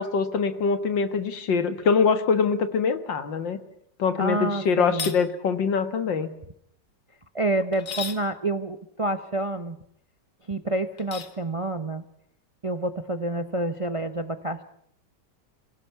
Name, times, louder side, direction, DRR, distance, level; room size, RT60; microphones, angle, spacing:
voice 1, 0.0-3.6 4.0-6.3, left 5 dB, 85° left, 10 dB, 2.3 m, -24 dB
voice 2, 4.2-5.1 7.3-9.8 10.5-12.0 12.6-14.6, right 1 dB, 30° right, 10 dB, 0.5 m, -28 dB
sound 1, 4.9-5.2 7.7-8.2 11.0-11.4, left 6 dB, 60° left, 1.9 m, -34 dB
26.0 x 17.0 x 8.3 m, 0.70 s
omnidirectional pair, 1.9 m